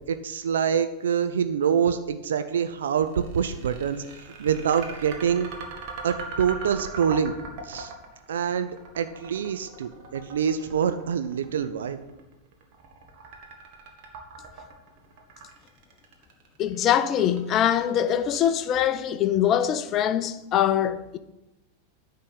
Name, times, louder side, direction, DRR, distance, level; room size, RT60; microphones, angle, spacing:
voice 1, 0.0-4.0 4.4-5.5 6.0-7.3 7.6-7.9 8.3-12.0, right 7 dB, 65° right, 0.5 m, -25 dB
sound 1, 3.0-19.1, right 3 dB, 45° right, 1.7 m, -41 dB
voice 2, 16.6-21.2, left 10 dB, 30° left, 0.6 m, -23 dB
10.0 x 3.7 x 7.3 m
figure-of-eight pair, 90°, 0 cm